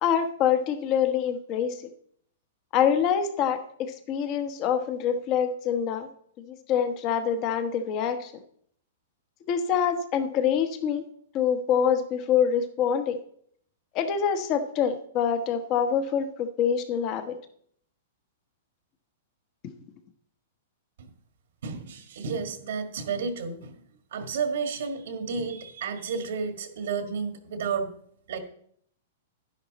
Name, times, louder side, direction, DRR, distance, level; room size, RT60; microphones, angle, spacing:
voice 1, 0.0-1.8 2.7-6.1 6.4-8.3 9.5-11.0 11.3-13.2 13.9-17.3 19.6-19.7, left 8 dB, 35° left, 9 dB, 1.2 m, -25 dB
voice 2, 21.6-23.8 24.1-27.9 28.3-28.4, right 5 dB, 75° right, 7 dB, 1.8 m, -31 dB
11.5 x 10.0 x 4.1 m, 0.64 s
hypercardioid pair, 155°, 0 cm